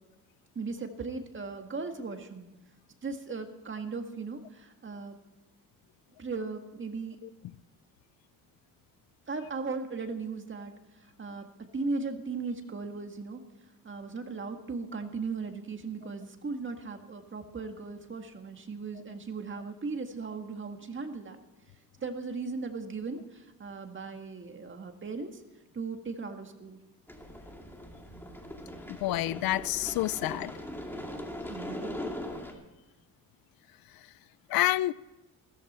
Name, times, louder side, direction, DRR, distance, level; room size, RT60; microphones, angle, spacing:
voice 1, 0.6-2.5 3.0-5.2 6.2-7.2 9.3-10.7 11.2-13.4 13.8-21.4 22.0-25.4 25.7-26.8 31.5-32.0, right 4 dB, 35° right, 1.8 m, -37 dB
sound 1, 27.1-32.5, left 1 dB, 5° left, 2.2 m, -40 dB
voice 2, 29.0-30.5 34.5-34.9, left 15 dB, 80° left, 0.5 m, -28 dB
15.5 x 14.5 x 4.3 m
cardioid pair, 110°, 35 cm